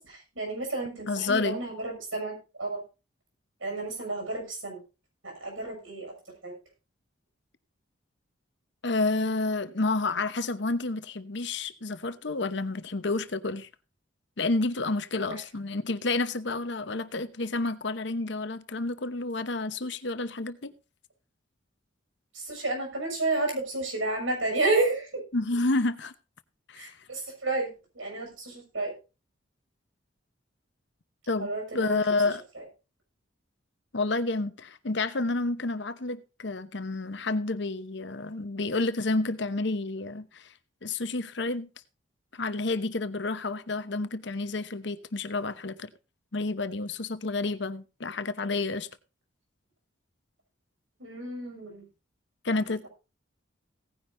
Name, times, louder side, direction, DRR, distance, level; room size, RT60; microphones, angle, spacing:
voice 1, 0.0-2.8 3.6-4.8 5.2-6.1 6.4-6.5 15.2-15.3 22.3-25.2 26.8-28.9 31.4-32.0 32.5-32.6 51.0-51.8, right 2 dB, 85° right, 6.4 m, -31 dB
voice 2, 1.1-1.6 8.8-13.7 14.4-20.7 25.3-26.1 26.7-26.9 31.3-32.4 33.9-40.5 40.8-41.7 42.3-45.9 46.3-48.9 52.4-52.9, left 3 dB, 60° left, 0.9 m, -30 dB
17.5 x 10.0 x 2.6 m
head